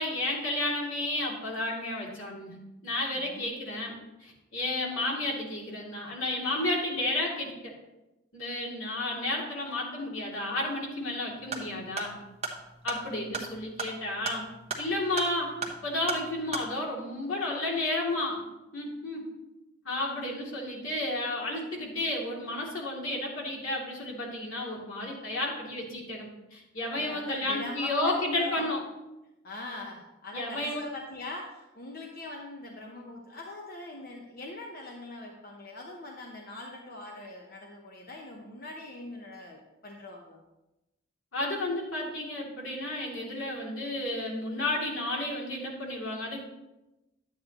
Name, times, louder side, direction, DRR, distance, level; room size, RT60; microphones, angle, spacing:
voice 1, 0.0-2.6 2.8-3.9 4.2-7.7 8.3-12.2 12.8-14.4 14.8-15.5 15.8-18.4 18.7-19.3 19.8-28.8 30.3-30.8 41.3-46.4, left 1 dB, 85° left, -3 dB, 2.6 m, -32 dB
voice 2, 3.1-3.6 26.9-28.7 29.4-40.4, left 2 dB, 45° left, 1 dB, 0.9 m, -42 dB
sound 1, 11.4-16.7, right 4 dB, 30° right, 1.0 m, -37 dB
11.0 x 8.8 x 3.0 m, 0.98 s
head